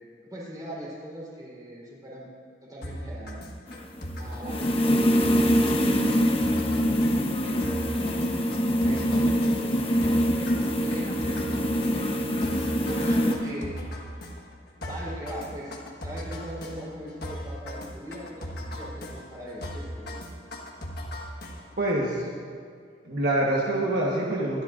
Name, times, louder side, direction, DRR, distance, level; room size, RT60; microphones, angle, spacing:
voice 1, 0.3-2.3 2.6-3.5 4.2-8.3 8.8-12.1 12.4-13.8 14.8-15.7 16.0-20.1 22.8-22.9, equal, 25° right, -5 dB, 4.0 m, -40 dB
sound 1, 2.8-21.9, equal, 65° left, 1.5 m, -38 dB
sound 2, 3.7-13.3, equal, 35° left, 1.0 m, -24 dB
voice 2, 21.8-22.2 23.1-24.6, right 1 dB, 60° right, -3 dB, 1.4 m, -25 dB
24.0 x 11.0 x 2.6 m, 2.1 s
head